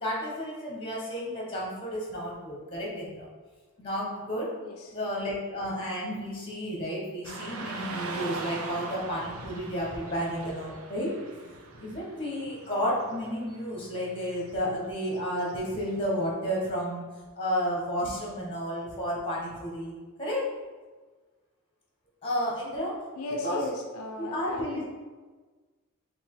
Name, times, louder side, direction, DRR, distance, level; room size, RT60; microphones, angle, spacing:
voice 1, 0.0-3.3 3.8-4.5 4.9-11.1 11.7-17.0 17.3-20.5 22.2-22.9 23.4-23.6 24.2-24.8, equal, 25° left, -4 dB, 1.3 m, -32 dB
voice 2, 4.6-5.0 23.2-24.8, left 2 dB, 75° left, 2 dB, 0.5 m, -36 dB
Car passing by / Traffic noise roadway noise, 7.2-16.3, right 3 dB, 70° right, 0.6 m, -42 dB
5.6 x 2.6 x 3.7 m, 1.3 s
head